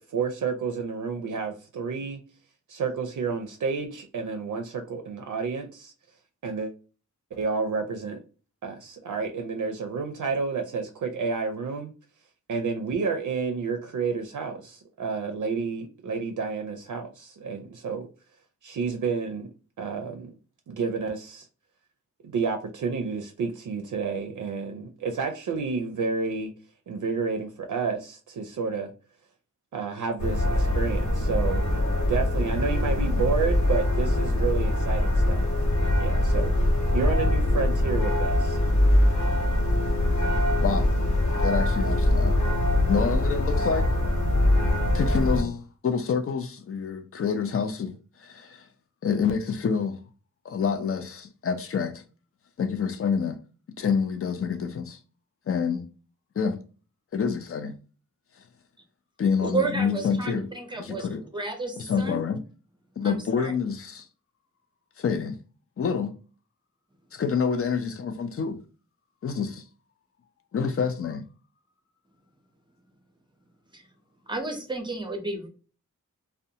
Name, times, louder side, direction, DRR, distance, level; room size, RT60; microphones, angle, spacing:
voice 1, 0.0-2.2 2.7-5.9 6.4-6.7 7.3-8.2 8.6-11.9 12.5-18.1 18.6-19.5 19.8-20.3 20.7-21.5 22.2-26.5 26.9-28.9 29.7-31.6 32.1-35.4 36.0-36.5 36.9-38.6, right 5 dB, 75° right, 0.5 m, -30 dB
sound 1, 30.2-45.4, left 1 dB, 70° left, 0.9 m, -23 dB
voice 2, 41.4-42.4 42.9-43.9 44.9-48.7 49.0-50.0 50.4-52.0 52.6-53.4 53.8-55.0 55.5-55.9 56.4-56.6 57.1-57.7 59.2-60.5 60.8-61.2 61.8-62.4 63.0-64.1 65.0-65.4 65.8-66.1 67.1-68.6 69.2-69.6 70.5-71.2, left 6 dB, 45° left, 0.4 m, -27 dB
voice 3, 59.4-62.2 63.0-63.5 73.7-73.8 74.3-75.5, right 3 dB, 15° right, 0.6 m, -32 dB
2.5 x 2.1 x 2.7 m
wide cardioid pair, 115°, 31 cm